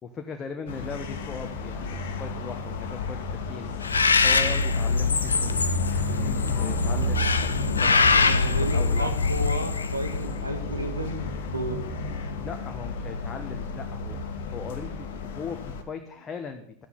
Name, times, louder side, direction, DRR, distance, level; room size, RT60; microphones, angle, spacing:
voice 1, 0.0-3.8 4.2-5.6 6.0-7.5 7.8-8.3 8.6-9.1 12.4-14.2 14.5-16.9, left 5 dB, 20° left, 5 dB, 1.2 m, -38 dB
sound 1, 0.7-15.8, left 2 dB, 55° left, 1.7 m, -30 dB
Bird, 3.8-10.2, left 4 dB, 75° left, 0.9 m, -24 dB
voice 2, 7.8-11.3 11.5-11.9, right 1 dB, 85° right, 6 dB, 1.9 m, -32 dB
13.0 x 9.9 x 5.8 m, 0.64 s
figure-of-eight pair, 90°, 0 cm